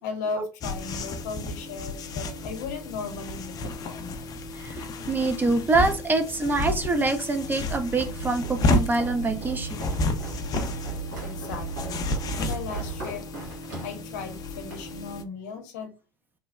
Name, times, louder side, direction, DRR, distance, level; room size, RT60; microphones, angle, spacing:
voice 1, 0.0-4.1 11.2-12.1 12.4-13.2 13.8-15.9, left 5 dB, 70° left, 5 dB, 0.7 m, -36 dB
sound 1, 0.6-15.2, left 2 dB, 40° left, 0.4 m, -31 dB
voice 2, 4.6-9.9, right 3 dB, 20° right, 5 dB, 0.5 m, -25 dB
Train, 7.7-13.0, right 6 dB, 60° right, 1.2 m, -37 dB
Walk footsteps, 8.4-14.9, right 1 dB, 80° right, 1.4 m, -40 dB
3.1 x 2.0 x 2.3 m, 0.31 s
hypercardioid pair, 70°, 10 cm